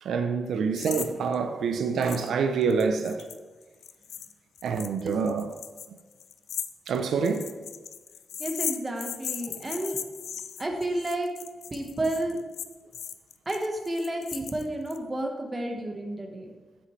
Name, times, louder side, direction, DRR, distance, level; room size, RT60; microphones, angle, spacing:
voice 1, 0.0-3.3 4.6-5.5 6.9-7.5, right 5 dB, 85° right, 0.5 m, -26 dB
sound 1, 0.8-1.1 1.3-1.4 2.0-2.3 2.6-15.0, left 8 dB, 80° left, 0.4 m, -38 dB
voice 2, 8.4-10.0 10.6-11.3 11.7-12.4 13.4-16.5, right 1 dB, 20° right, 1.2 m, -31 dB
8.5 x 7.7 x 3.2 m
wide cardioid pair, 125°, 0 cm